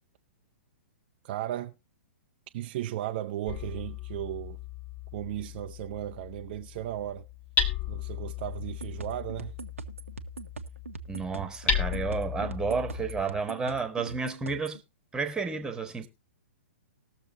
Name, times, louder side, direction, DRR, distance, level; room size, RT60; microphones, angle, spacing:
voice 1, 1.2-1.7 2.5-4.6 5.1-7.3 7.9-9.6, right 13 dB, 45° right, 0.6 m, -35 dB
Hammer, 3.5-13.2, left 6 dB, 20° left, 1.4 m, -35 dB
sound 1, 8.6-14.8, right 5 dB, 85° right, 1.0 m, -42 dB
voice 2, 11.1-14.8 15.1-16.1, right 4 dB, 10° right, 1.5 m, -31 dB
20.0 x 6.8 x 2.7 m
hypercardioid pair, 120°, 7 cm